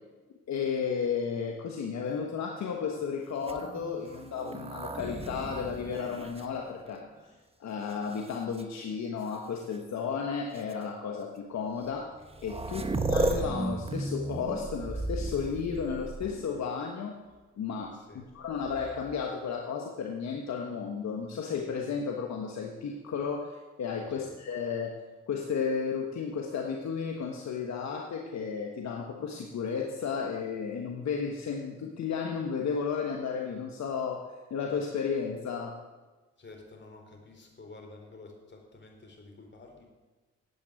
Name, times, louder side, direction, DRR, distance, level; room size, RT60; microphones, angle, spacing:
voice 1, 0.5-7.0 7.6-12.1 12.4-12.8 13.1-17.2 17.6-18.0 18.3-24.9 25.3-34.2 34.5-35.8, left 6 dB, 70° left, 2 dB, 1.4 m, -33 dB
sound 1, 3.4-7.2 7.9-8.6 9.7-9.8 10.5-10.7 11.9-12.0 12.1-16.6 18.5-19.2, right 2 dB, 20° right, 1.3 m, -35 dB
voice 2, 12.7-13.0 17.9-18.3 24.2-24.3 36.4-39.9, left 3 dB, 40° left, 2 dB, 4.0 m, -50 dB
9.5 x 8.3 x 9.2 m, 1.2 s
supercardioid pair, 65°, 29 cm